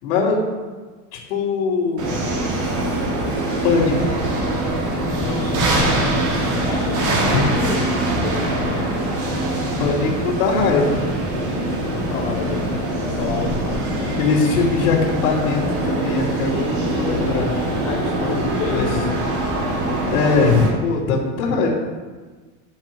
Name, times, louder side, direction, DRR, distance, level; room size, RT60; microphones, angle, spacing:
voice 1, 0.0-0.4 1.3-2.2 3.6-4.3 7.3-7.4 9.8-11.1 14.2-17.5 17.9-18.9 20.1-21.7, left 4 dB, 70° left, -8 dB, 3.2 m, -21 dB
sound 1, 1.8-20.0 20.4-20.5, left 2 dB, 5° left, 0.5 m, -38 dB
sound 2, 2.0-20.7, right 1 dB, 55° right, 3.4 m, -23 dB
voice 2, 5.2-5.9 6.7-9.1 11.8-14.2 17.8-19.4, left 6 dB, 40° left, 0 dB, 1.0 m, -30 dB
10.5 x 7.6 x 4.7 m, 1.4 s
supercardioid pair, 175°, 41 cm